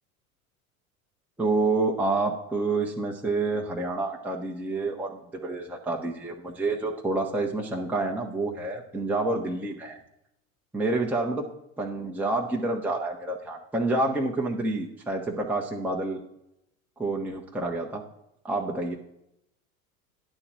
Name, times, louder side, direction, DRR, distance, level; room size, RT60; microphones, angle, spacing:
voice 1, 1.4-10.0 10.7-11.5 11.8-16.2 17.0-18.0 18.4-19.0, right 2 dB, 5° right, 0 dB, 0.9 m, -28 dB
9.9 x 3.9 x 7.4 m, 0.82 s
figure-of-eight pair, 80°, 43 cm